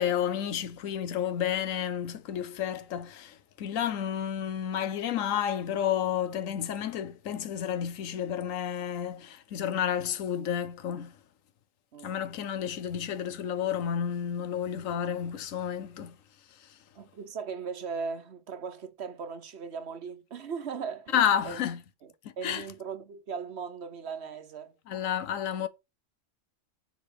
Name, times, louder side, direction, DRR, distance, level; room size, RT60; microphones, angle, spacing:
voice 1, 0.0-11.1 12.0-16.2 16.7-16.8 21.1-21.8 22.2-22.7 24.9-25.7, left 9 dB, 90° left, 1.2 m, -31 dB
voice 2, 17.0-21.6 22.4-24.8, right 5 dB, 60° right, 1.2 m, -38 dB
7.2 x 3.8 x 5.1 m
omnidirectional pair, 1.3 m